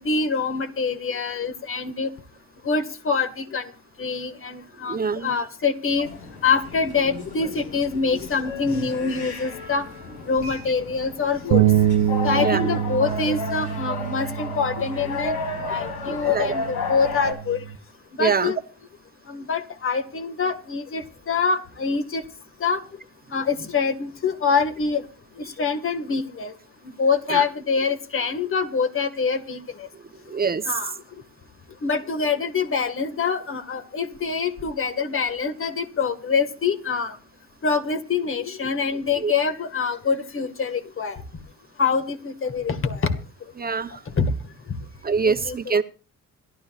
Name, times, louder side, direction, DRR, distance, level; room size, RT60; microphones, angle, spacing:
voice 1, 0.0-2.1 2.7-3.7 4.0-6.1 6.4-9.8 10.3-11.6 12.2-15.4 15.7-17.6 18.2-18.6 19.3-22.2 22.6-22.8 23.3-25.0 25.6-26.5 27.0-29.6 30.7-30.9 31.8-37.2 37.6-41.2 41.8-43.2 44.2-44.3 45.2-45.8, left 5 dB, 45° left, 8 dB, 1.9 m, -25 dB
voice 2, 4.9-5.3 12.4-12.7 16.1-16.5 18.2-18.5 27.3-27.4 30.3-30.6 39.2-39.3 43.6-43.9 45.0-45.8, right 5 dB, 30° right, 10 dB, 0.9 m, -24 dB
sound 1, 5.9-17.3, left 3 dB, 85° left, 5.4 m, -33 dB
sound 2, 11.5-17.8, right 11 dB, 80° right, 0.9 m, -25 dB
26.5 x 12.5 x 2.5 m, 0.34 s
cardioid pair, 90°, 30 cm